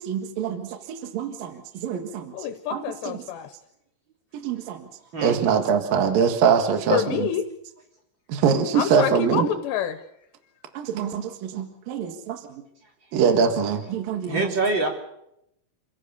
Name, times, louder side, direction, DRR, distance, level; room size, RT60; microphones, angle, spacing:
voice 1, 0.0-2.3 2.7-3.2 4.3-4.9 5.2-7.3 8.3-9.5 10.7-12.4 13.1-14.4, right 6 dB, 60° right, 6 dB, 3.1 m, -24 dB
voice 2, 2.3-3.5 6.9-7.4 8.7-10.0, left 8 dB, 80° left, 8 dB, 3.2 m, -27 dB
voice 3, 14.3-14.9, right 2 dB, 30° right, 1 dB, 3.2 m, -24 dB
28.5 x 16.0 x 6.9 m, 0.80 s
omnidirectional pair, 5.1 m